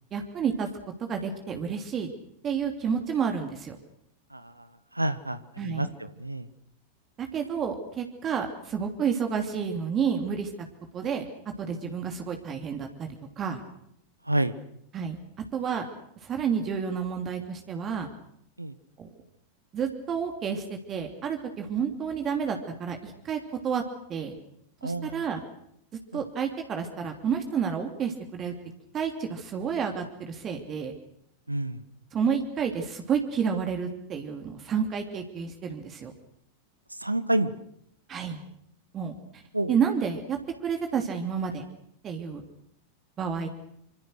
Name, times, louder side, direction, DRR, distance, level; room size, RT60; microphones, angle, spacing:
voice 1, 0.1-0.7 1.1-2.1 2.4-3.8 5.6-5.9 7.2-10.5 10.9-11.2 11.6-13.6 14.9-15.2 15.5-15.9 16.2-18.1 19.0-19.1 19.7-23.8 24.1-24.3 24.8-25.4 26.1-28.5 28.9-30.9 32.1-36.1 38.1-38.4 38.9-39.1 39.7-41.6 42.0-42.4 43.2-43.5, right 7 dB, 30° right, 4 dB, 3.0 m, -30 dB
voice 2, 4.3-4.7 4.9-6.5 11.8-11.9 14.3-14.5 18.6-18.8 24.8-25.2 26.1-26.2 31.5-31.8 36.9-37.5 39.5-39.8, right 1 dB, 85° right, 14 dB, 1.3 m, -29 dB
26.0 x 25.5 x 6.5 m, 0.73 s
figure-of-eight pair, 90°, 0 cm